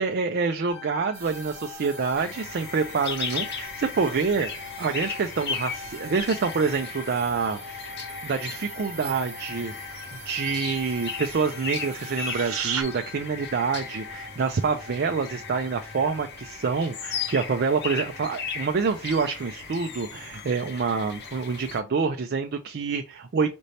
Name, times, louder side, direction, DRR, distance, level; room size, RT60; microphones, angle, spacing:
voice 1, 0.0-7.8 8.2-9.7 10.1-23.6, right 5 dB, 45° right, 6 dB, 0.4 m, -27 dB
sound 1, 0.7-19.5, left 5 dB, 80° left, 1.6 m, -44 dB
sound 2, 1.1-12.8, right 9 dB, 70° right, 0.9 m, -41 dB
sound 3, 2.2-21.8, left 6 dB, 50° left, 0.9 m, -37 dB
5.2 x 2.7 x 3.2 m, 0.30 s
head